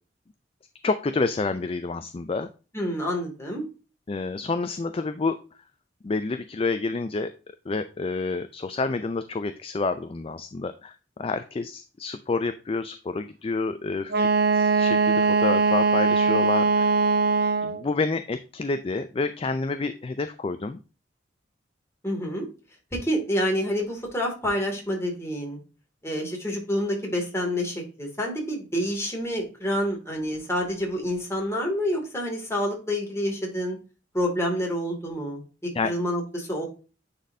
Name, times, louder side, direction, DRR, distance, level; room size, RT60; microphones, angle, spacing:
voice 1, 0.8-2.5 4.1-5.4 6.0-7.3 7.7-16.9 17.6-20.8 35.7-35.9, left 3 dB, 30° left, 10 dB, 0.4 m, -29 dB
voice 2, 2.7-3.6 22.0-22.5 22.9-25.6 26.0-33.8 34.1-36.6, equal, 15° left, 0 dB, 2.3 m, -28 dB
Wind instrument woodwind instrument, 14.1-17.8, right 4 dB, 60° right, 0.6 m, -21 dB
9.5 x 4.2 x 2.6 m, 0.33 s
head